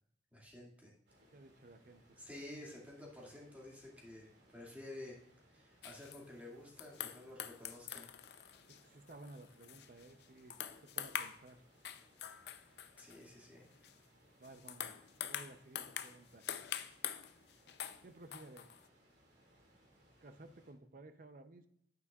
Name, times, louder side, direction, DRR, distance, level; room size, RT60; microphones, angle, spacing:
voice 1, 0.3-0.9 2.2-5.2 5.5-8.1 12.9-13.7, left 1 dB, 10° right, -3 dB, 2.1 m, -51 dB
sound 1, 1.1-20.7, equal, 80° right, 2.3 m, -68 dB
voice 2, 1.3-2.2 8.7-11.6 14.4-14.9 15.2-16.4 18.0-18.7 20.2-21.7, right 2 dB, 50° right, 9 dB, 0.6 m, -56 dB
sound 2, 5.8-6.2 6.8-10.2 10.5-11.5 11.8-13.2 13.8-13.9 14.4-18.0 18.3-18.9, left 10 dB, 65° left, 0.5 m, -45 dB
9.4 x 8.9 x 2.4 m, 0.73 s
head